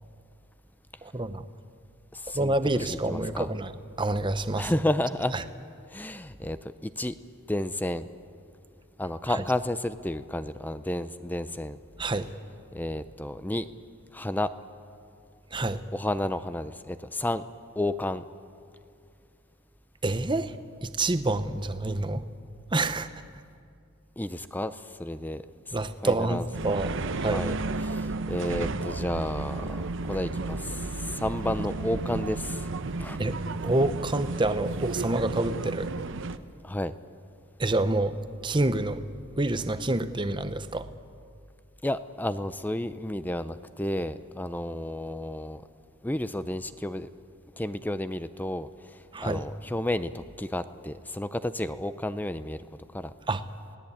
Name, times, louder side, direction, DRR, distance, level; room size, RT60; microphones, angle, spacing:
voice 1, 1.0-1.4 2.3-3.7 4.0-4.7 5.3-5.4 12.0-12.3 15.5-15.8 20.0-20.6 20.8-22.2 22.7-23.1 25.7-26.9 27.2-27.4 33.2-35.9 37.6-39.0 39.4-40.9 49.1-49.5 53.3-53.4, right 2 dB, 20° right, 11 dB, 0.8 m, -27 dB
voice 2, 2.1-2.5 2.8-3.5 4.6-5.4 5.9-7.2 7.5-8.1 9.0-11.8 12.7-13.7 14.1-14.5 15.9-17.4 17.8-18.2 24.2-25.8 26.0-26.5 27.3-32.7 33.0-33.2 36.6-36.9 41.8-45.6 46.0-47.1 47.6-48.7 49.2-52.6 52.9-53.1, left 1 dB, 10° left, 12 dB, 0.5 m, -31 dB
sound 1, 26.5-36.4, right 3 dB, 60° right, 0.8 m, -33 dB
28.0 x 18.0 x 8.7 m, 2.4 s
head